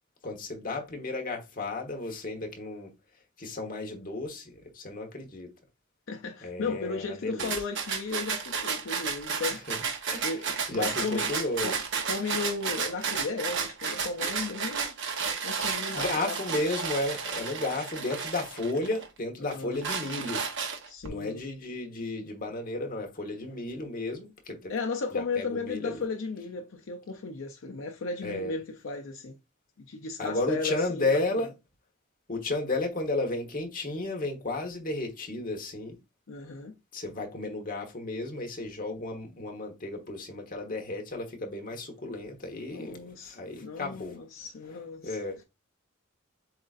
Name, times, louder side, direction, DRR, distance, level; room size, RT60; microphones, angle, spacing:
voice 1, 0.2-2.9 3.4-5.5 6.4-7.5 9.7-9.8 10.1-10.3 10.7-11.7 15.9-20.5 21.1-24.7 25.1-26.0 28.2-28.5 30.2-31.5 32.3-36.0 36.9-44.2 45.0-45.4, left 2 dB, 45° left, 1.2 m, -33 dB
voice 2, 6.1-9.6 10.2-11.3 11.6-15.0 15.4-16.6 19.4-19.8 20.9-21.4 24.7-29.4 29.8-31.4 36.3-36.8 42.7-45.2, left 4 dB, 70° left, 0.6 m, -35 dB
sound 1, 7.4-19.1 19.5-21.1, right 6 dB, 65° right, 0.9 m, -32 dB
7.7 x 2.6 x 2.4 m
head